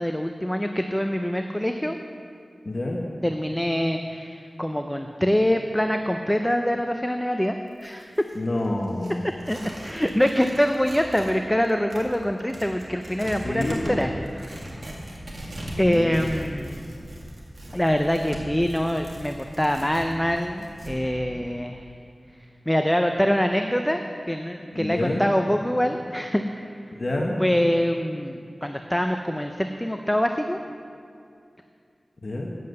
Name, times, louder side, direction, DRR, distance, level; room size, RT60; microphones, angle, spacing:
voice 1, 0.0-2.0 3.2-7.6 7.8-8.3 9.5-14.1 14.4-14.8 15.8-16.8 17.7-21.8 22.7-24.0 24.3-26.7 27.4-30.6, equal, 10° left, 5 dB, 0.5 m, -24 dB
voice 2, 2.6-3.0 8.3-9.2 13.2-14.1 15.8-16.2 21.3-21.5 24.7-25.2 26.9-27.4 32.2-32.5, left 1 dB, 50° left, -1 dB, 1.1 m, -28 dB
Tearing, 7.7-11.4 11.6-21.0, right 1 dB, 55° right, 2.1 m, -39 dB
9.4 x 7.6 x 7.6 m, 2.4 s
wide cardioid pair, 70°, 0 cm